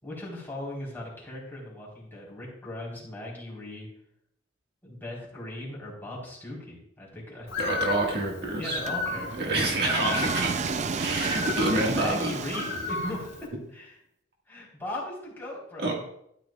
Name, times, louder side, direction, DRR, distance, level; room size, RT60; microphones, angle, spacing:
voice 1, 0.0-3.9 4.8-7.5 8.6-9.5 11.6-13.3 13.7-14.0 14.5-15.9, left 1 dB, 10° left, -5 dB, 3.8 m, -38 dB
Bird, 7.5-13.5, left 3 dB, 75° left, 3.3 m, -34 dB
voice 2, 7.6-8.8 9.4-10.5 11.0-12.3 15.8-15.9, right 2 dB, 55° right, -1 dB, 1.7 m, -27 dB
sound 1, 8.9-13.3, right 4 dB, 35° right, 0.4 m, -32 dB
13.0 x 10.5 x 2.3 m, 0.74 s
head